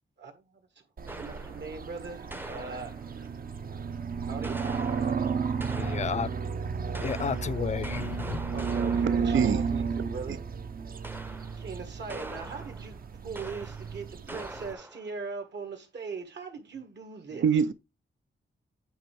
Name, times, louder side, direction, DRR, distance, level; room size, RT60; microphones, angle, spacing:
voice 1, 0.2-0.6 1.2-3.3 4.3-4.6 8.5-10.4 11.6-17.5, right 4 dB, 65° right, 1.8 m, -40 dB
sound 1, 1.0-14.7, right 5 dB, 50° right, 0.6 m, -33 dB
sound 2, 1.1-1.8 2.3-3.3 4.4-6.4 6.9-9.5 11.0-11.7 12.1-13.0 13.4-14.0 14.3-15.1, right 1 dB, 10° right, 0.6 m, -43 dB
voice 2, 5.8-6.4 7.0-8.4, left 6 dB, 35° left, 0.4 m, -32 dB
voice 3, 9.3-9.6 10.3-10.4 17.3-17.7, right 7 dB, 90° right, 0.6 m, -24 dB
8.9 x 3.4 x 4.6 m
wide cardioid pair, 110°, 20 cm